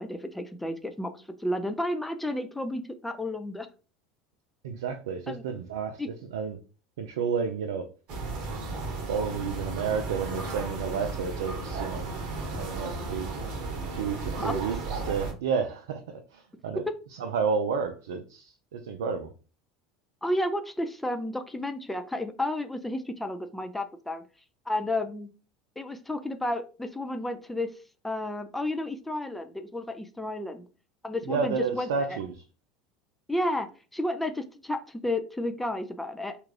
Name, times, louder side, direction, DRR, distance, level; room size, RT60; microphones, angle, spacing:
voice 1, 0.0-3.7 5.3-5.4 6.0-6.1 14.4-14.6 16.9-17.0 20.2-24.2 24.7-25.3 25.8-27.7 28.0-30.6 31.0-32.2 33.3-36.4, left 1 dB, 5° left, 7 dB, 0.4 m, -32 dB
voice 2, 4.6-6.6 7.0-7.9 9.1-12.0 12.6-13.3 13.9-14.8 15.0-16.9 17.2-19.3 31.3-32.4, right 6 dB, 70° right, 6 dB, 0.3 m, -31 dB
sound 1, 8.1-15.3, right 3 dB, 50° right, 1.0 m, -34 dB
3.3 x 2.4 x 3.2 m, 0.36 s
figure-of-eight pair, 75°, 2 cm